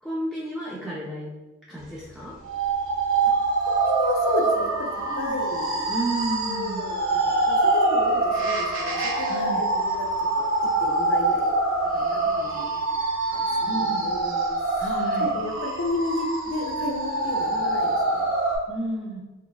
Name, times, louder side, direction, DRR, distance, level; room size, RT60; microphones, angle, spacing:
voice 1, 0.0-1.3 1.7-2.3 5.1-5.4 5.9-6.9 9.3-9.7 12.2-12.4 13.7-14.1 14.8-15.4 18.7-19.2, right 1 dB, ahead, -8 dB, 0.4 m, -32 dB
sound 1, 2.4-18.6, right 2 dB, 70° right, 0.6 m, -25 dB
voice 2, 3.6-5.9 6.4-10.1 10.4-11.6 11.9-12.7 13.3-14.9 15.2-18.2, left 2 dB, 80° left, 1 dB, 0.6 m, -32 dB
3.8 x 3.0 x 2.3 m, 1.2 s
head